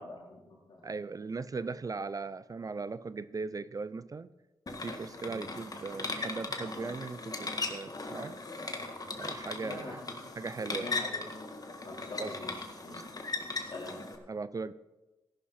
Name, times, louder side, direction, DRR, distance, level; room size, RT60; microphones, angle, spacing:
voice 1, 0.0-1.0 5.2-5.5 9.4-10.2 10.6-11.2 11.8-13.0 13.5-14.0, left 3 dB, 65° left, -3 dB, 4.1 m, -45 dB
voice 2, 0.8-4.3 4.8-8.4 9.2-10.0 10.4-10.9 12.2-12.4 12.9-13.0 14.3-14.7, right 4 dB, 40° right, 16 dB, 0.5 m, -38 dB
sound 1, 4.7-14.1, left 3 dB, 45° left, 1.8 m, -38 dB
14.0 x 11.5 x 4.3 m, 1.1 s
cardioid pair, 60°, 9 cm